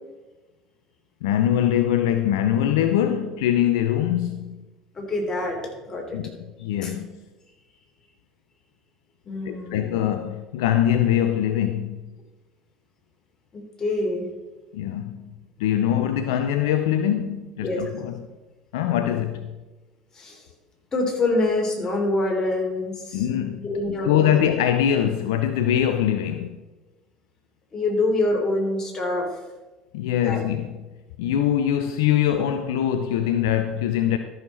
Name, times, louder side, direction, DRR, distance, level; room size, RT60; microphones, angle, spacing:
voice 1, 1.2-4.6 6.1-6.3 6.6-7.2 9.5-12.0 14.7-15.3 15.6-18.2 18.7-19.5 23.1-23.7 24.0-26.6 29.9-30.8 31.2-34.2, left 10 dB, 70° left, 0.5 m, -23 dB
voice 2, 4.9-5.6 5.9-6.2 6.8-6.9 9.2-10.0 13.5-14.3 17.6-17.8 20.1-20.4 20.9-23.3 23.6-24.3 27.7-29.3 30.2-30.4, left 2 dB, 30° left, 3.2 m, -25 dB
13.5 x 6.4 x 4.3 m
hypercardioid pair, 65°, 2 cm